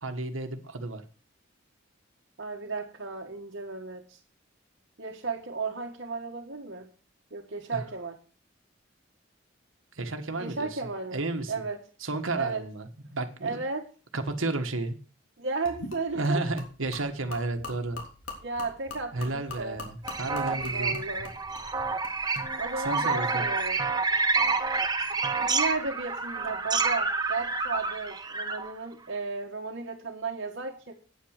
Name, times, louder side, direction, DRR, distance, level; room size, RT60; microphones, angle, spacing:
voice 1, 0.0-1.0 7.7-7.8 9.9-10.8 11.1-11.5 12.0-13.5 14.1-15.0 16.1-18.0 19.1-20.9 22.8-23.4, right 2 dB, 85° right, 5 dB, 1.5 m, -32 dB
voice 2, 2.4-4.2 5.0-6.9 7.3-8.2 10.4-11.2 11.5-11.8 12.3-12.6 13.4-13.8 15.4-16.4 18.4-19.8 20.3-21.3 22.6-23.8 25.4-30.9, right 4 dB, 60° right, -3 dB, 1.6 m, -34 dB
Gurgling / Liquid, 15.6-22.5, left 3 dB, 75° left, 3.4 m, -44 dB
sound 1, 20.0-28.7, right 4 dB, 20° right, 1.2 m, -29 dB
9.4 x 9.0 x 6.6 m, 0.38 s
head